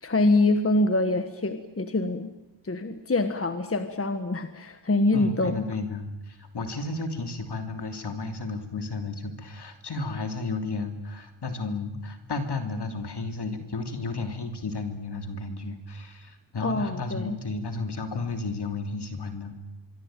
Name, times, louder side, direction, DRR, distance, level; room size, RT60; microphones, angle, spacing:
voice 1, 0.0-2.3 2.6-5.6 16.6-17.4, left 2 dB, 30° left, 9 dB, 1.4 m, -25 dB
voice 2, 5.1-19.6, left 3 dB, 55° left, 6 dB, 3.2 m, -33 dB
25.0 x 24.0 x 9.1 m, 0.96 s
wide cardioid pair, 140°, 48 cm